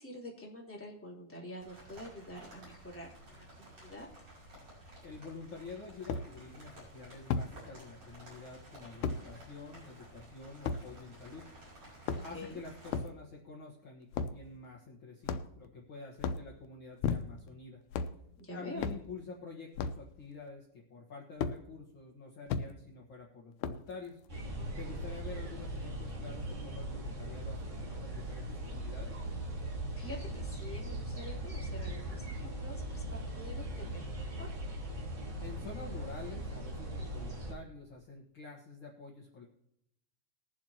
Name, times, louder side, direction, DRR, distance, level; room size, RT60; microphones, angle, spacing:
voice 1, 0.0-4.1 12.1-12.6 18.4-18.9 30.0-34.5, equal, 5° left, -4 dB, 2.7 m, -47 dB
sound 1, 1.6-13.0, right 1 dB, 45° right, 6.6 m, -54 dB
voice 2, 5.0-11.4 12.2-17.8 18.5-24.2 24.8-29.2 35.4-39.5, left 4 dB, 50° left, -3 dB, 2.0 m, -48 dB
sound 2, 5.1-5.2 6.1-6.3 7.3-7.5 9.0-9.2 10.7-10.8 11.9-12.5 12.9-13.1 14.1-14.4 15.3-15.7 16.2-16.5 17.0-17.5 17.9-18.2 18.8-19.0 19.8-20.0 21.4-21.6 22.5-22.7 23.6-23.9, left 5 dB, 90° left, 2.2 m, -34 dB
sound 3, 24.3-37.5, right 1 dB, 25° right, 2.4 m, -39 dB
21.0 x 7.4 x 2.9 m, 0.77 s
omnidirectional pair, 3.4 m